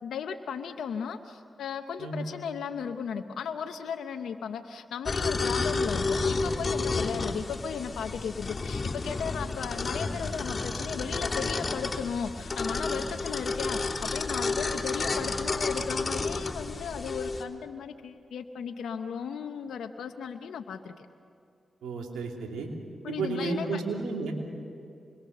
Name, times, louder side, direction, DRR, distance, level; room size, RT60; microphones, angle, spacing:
voice 1, 0.0-20.9 23.0-23.8, left 7 dB, 85° left, 6 dB, 0.8 m, -36 dB
sound 1, 5.1-17.4, left 3 dB, 45° left, 3.0 m, -31 dB
voice 2, 21.8-22.7 23.1-24.3, right 4 dB, 90° right, 2 dB, 2.7 m, -32 dB
26.0 x 22.0 x 6.7 m, 2.5 s
supercardioid pair, 40°, 0 cm